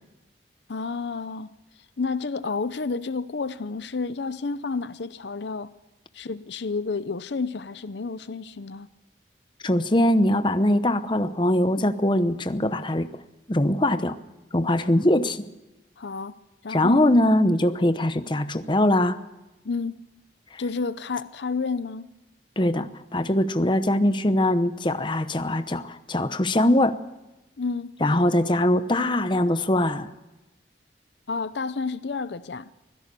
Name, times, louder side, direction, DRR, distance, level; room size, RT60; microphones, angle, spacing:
voice 1, 0.7-1.5 2.0-5.7 6.1-8.9 15.0-15.1 16.0-16.3 16.6-17.1 19.6-20.0 20.6-22.1 27.6-27.9 31.3-32.7, left 4 dB, 70° left, 0.7 m, -30 dB
voice 2, 9.6-13.1 13.5-14.2 14.5-15.4 16.7-19.2 20.5-20.6 22.6-27.0 28.0-30.1, left 1 dB, 25° left, 0.8 m, -22 dB
25.0 x 16.5 x 6.8 m
head